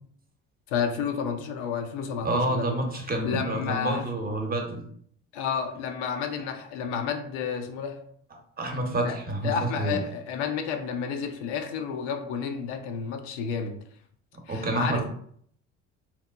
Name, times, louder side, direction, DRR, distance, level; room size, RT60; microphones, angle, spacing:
voice 1, 0.7-2.8 3.2-4.1 5.3-8.0 9.0-9.2 9.4-13.8 14.5-15.0, left 6 dB, 75° left, 6 dB, 0.5 m, -31 dB
voice 2, 2.2-4.8 8.6-10.0 14.5-15.0, right 2 dB, 25° right, 3 dB, 0.6 m, -28 dB
2.8 x 2.1 x 2.3 m, 0.63 s
hypercardioid pair, 60°, 35 cm